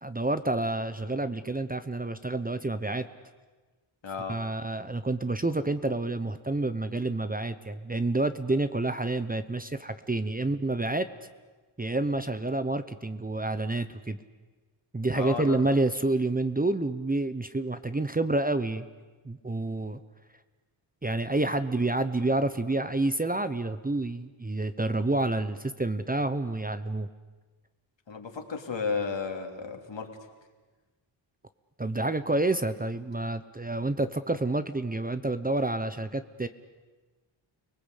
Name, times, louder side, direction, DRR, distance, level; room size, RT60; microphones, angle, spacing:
voice 1, 0.0-3.0 4.3-11.1 11.8-14.2 14.9-18.9 19.2-20.0 21.0-27.1 31.8-36.5, right 2 dB, 20° right, 11 dB, 0.9 m, -28 dB
voice 2, 4.0-4.4 15.1-15.7 28.1-30.1, left 5 dB, 65° left, 3 dB, 3.3 m, -33 dB
29.5 x 19.5 x 8.2 m, 1.3 s
wide cardioid pair, 90°, 48 cm